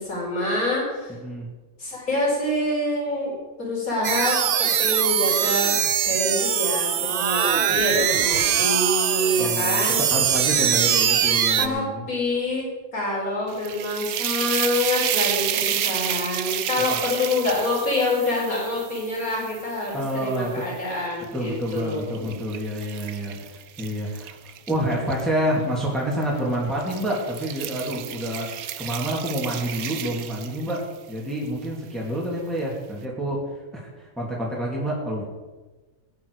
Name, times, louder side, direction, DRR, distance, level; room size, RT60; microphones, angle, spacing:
voice 1, 0.0-1.1 1.8-5.7 6.0-10.0 11.6-12.7 12.9-22.4, left 2 dB, 80° left, -3 dB, 5.0 m, -26 dB
sound 1, 4.0-11.7, right 9 dB, 55° right, 0.6 m, -22 dB
voice 2, 9.4-9.8 10.1-12.0 19.9-20.6 21.3-24.4 24.7-33.4 33.7-35.2, right 1 dB, ahead, -4 dB, 2.8 m, -28 dB
sound 2, 13.5-20.7 21.2-25.2 26.1-26.4 26.8-31.0, right 10 dB, 85° right, 1.2 m, -31 dB
18.5 x 9.7 x 4.9 m, 1.2 s
omnidirectional pair, 1.5 m